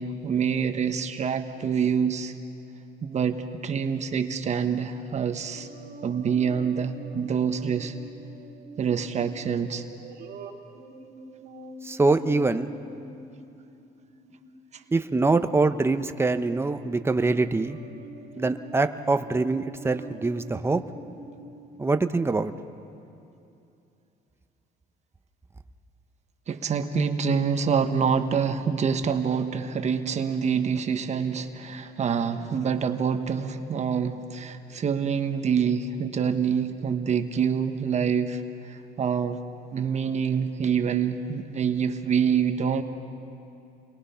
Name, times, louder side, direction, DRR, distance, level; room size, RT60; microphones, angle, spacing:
voice 1, 0.0-2.3 3.0-5.7 6.0-8.0 8.8-9.8 26.5-39.4 39.7-42.8, right 6 dB, 40° right, 7 dB, 1.3 m, -26 dB
sound 1, 5.5-14.9 15.7-16.0 16.3-22.0, right 3 dB, 70° right, 2.3 m, -45 dB
voice 2, 11.8-12.7 14.9-17.8 18.4-20.8 21.8-22.5, right 3 dB, 15° right, 9 dB, 0.9 m, -24 dB
30.0 x 22.5 x 5.8 m, 2.7 s
cardioid pair, 110°, 17 cm